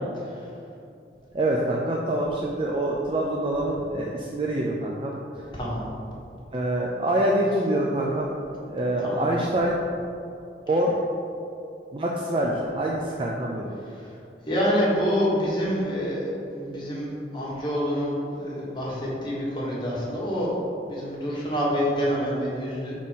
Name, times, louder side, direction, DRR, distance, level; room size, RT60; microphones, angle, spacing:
voice 1, 1.3-5.1 6.5-8.3 8.6-9.8 10.7-11.0 11.9-13.7, right 1 dB, 30° right, -3 dB, 0.4 m, -25 dB
voice 2, 5.5-5.9 9.0-9.2 14.5-16.2 16.5-20.5 20.9-22.9, equal, 25° left, -6 dB, 1.3 m, -27 dB
4.8 x 4.1 x 5.6 m, 2.6 s
head